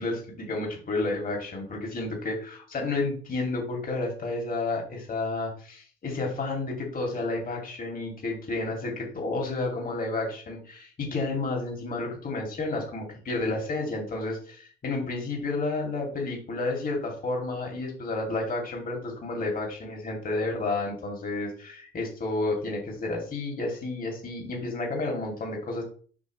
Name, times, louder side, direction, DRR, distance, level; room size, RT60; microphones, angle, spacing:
voice 1, 0.0-25.8, left 2 dB, 45° left, 0 dB, 2.7 m, -31 dB
8.1 x 6.2 x 3.2 m, 0.42 s
cardioid pair, 90°, 20 cm